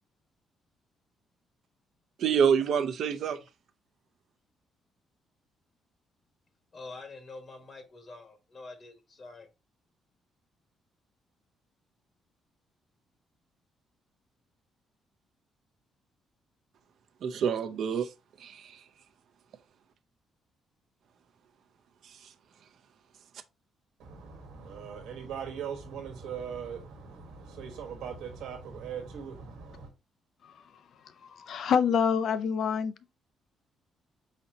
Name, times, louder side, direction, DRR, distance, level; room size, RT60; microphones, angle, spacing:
voice 1, 2.2-3.4 17.2-18.1 18.4-18.8, right 7 dB, 70° right, 0.5 m, -27 dB
voice 2, 6.7-9.5, left 3 dB, 45° left, 1.2 m, -46 dB
voice 3, 24.0-29.9, right 7 dB, 90° right, 1.2 m, -40 dB
voice 4, 31.2-33.1, left 7 dB, 65° left, 0.4 m, -27 dB
4.1 x 4.1 x 2.7 m
cardioid pair, 90°, 0 cm